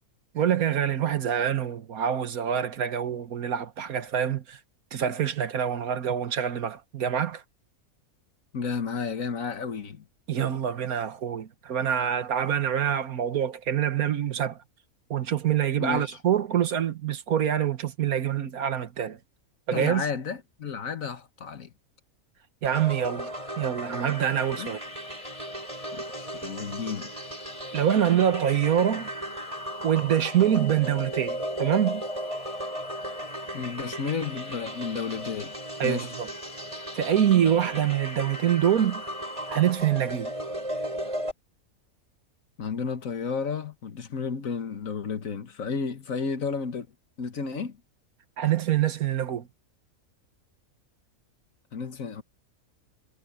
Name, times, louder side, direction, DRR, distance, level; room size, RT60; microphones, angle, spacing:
voice 1, 0.3-4.6 4.9-7.4 10.3-14.6 15.1-19.2 19.7-20.0 22.6-23.3 23.6-24.8 27.7-29.1 29.8-32.0 35.8-36.3 36.9-39.0 39.5-40.3 48.4-49.5, right 9 dB, 80° right, 1.7 m, -25 dB
voice 2, 8.5-10.0 15.8-16.2 19.7-21.7 24.6-24.8 25.9-27.1 33.5-35.5 35.8-36.1 42.6-46.9 47.2-47.8 51.7-52.2, left 5 dB, 65° left, 1.8 m, -32 dB
sound 1, 22.6-41.3, right 1 dB, 20° right, 6.9 m, -36 dB
sound 2, 24.1-39.7, left 11 dB, 30° left, 4.9 m, -49 dB
omnidirectional pair, 1.5 m